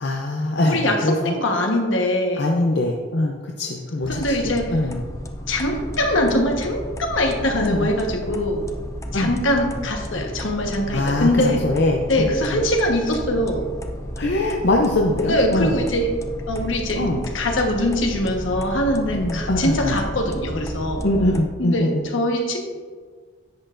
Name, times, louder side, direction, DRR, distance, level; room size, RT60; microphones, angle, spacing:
voice 1, 0.0-1.4 2.4-4.3 4.7-5.0 7.6-7.9 9.1-9.3 10.9-12.6 14.2-15.8 17.0-17.2 19.1-19.9 21.0-22.1, left 1 dB, 55° left, 0 dB, 0.6 m, -22 dB
voice 2, 0.6-2.5 4.1-4.8 5.5-8.6 9.1-11.6 12.1-13.6 15.2-16.1 16.5-17.0 17.3-21.1 21.6-22.6, left 1 dB, 75° left, 2 dB, 1.3 m, -22 dB
sound 1, 4.0-21.4, equal, 15° left, 0.5 m, -32 dB
10.5 x 7.9 x 2.6 m, 1.5 s
head